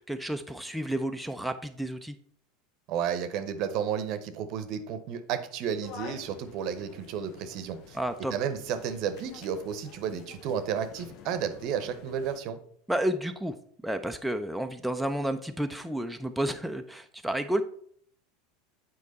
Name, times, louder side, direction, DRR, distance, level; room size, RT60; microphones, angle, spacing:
voice 1, 0.0-2.1 7.9-8.3 12.9-13.6 13.8-17.6, right 1 dB, ahead, 5 dB, 0.5 m, -31 dB
voice 2, 2.9-8.0 8.3-12.6, right 8 dB, 50° right, 10 dB, 0.8 m, -32 dB
sound 1, 5.8-12.4, left 7 dB, 50° left, 0.6 m, -49 dB
8.3 x 4.6 x 4.1 m, 0.62 s
figure-of-eight pair, 80°, 0 cm